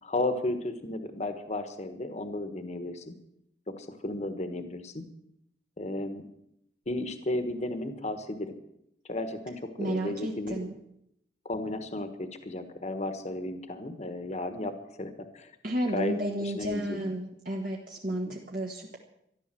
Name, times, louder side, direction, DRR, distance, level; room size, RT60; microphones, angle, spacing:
voice 1, 0.0-3.1 3.8-5.0 5.8-6.2 6.9-8.5 9.1-10.7 11.4-15.5 15.9-17.0 18.1-18.3, left 2 dB, 40° left, 9 dB, 1.4 m, -34 dB
voice 2, 9.8-10.7 15.6-19.0, right 1 dB, 50° right, -1 dB, 1.7 m, -32 dB
14.0 x 11.5 x 7.7 m, 0.78 s
head